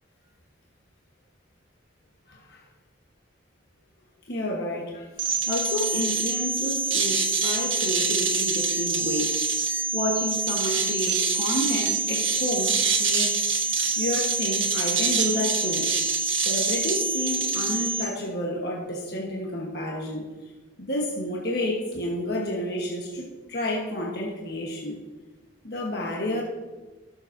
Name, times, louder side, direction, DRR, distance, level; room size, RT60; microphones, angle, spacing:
voice 1, 2.3-2.6 4.3-5.1 5.4-9.4 9.9-15.9 16.4-20.3 20.8-25.0 25.6-26.4, left 1 dB, 55° left, -2 dB, 1.3 m, -30 dB
sound 1, 5.2-18.1, right 3 dB, 85° right, 1.6 m, -25 dB
17.0 x 7.1 x 2.7 m, 1.2 s
head